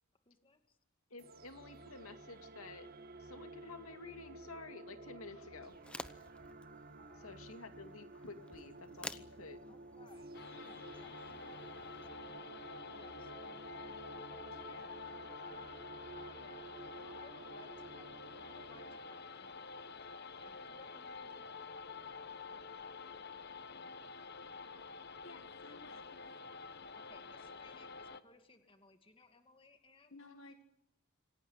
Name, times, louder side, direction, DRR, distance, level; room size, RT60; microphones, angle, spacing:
voice 1, 0.3-0.8 7.0-7.5 9.7-14.1 14.6-15.0 16.1-21.6 26.9-30.2, left 3 dB, 25° left, 7 dB, 2.3 m, -64 dB
voice 2, 1.1-2.9 3.2-5.7 7.2-9.6, left 3 dB, 80° left, 7 dB, 2.6 m, -51 dB
sound 1, 1.2-19.0, right 3 dB, 45° right, 1.7 m, -53 dB
sound 2, 5.7-12.1, left 1 dB, 5° left, 0.9 m, -52 dB
sound 3, 10.3-28.2, left 4 dB, 50° left, 1.3 m, -49 dB
voice 3, 25.2-26.1 29.2-29.3 30.0-30.6, left 2 dB, 65° left, 7 dB, 1.8 m, -55 dB
27.0 x 18.0 x 9.6 m, 0.84 s
head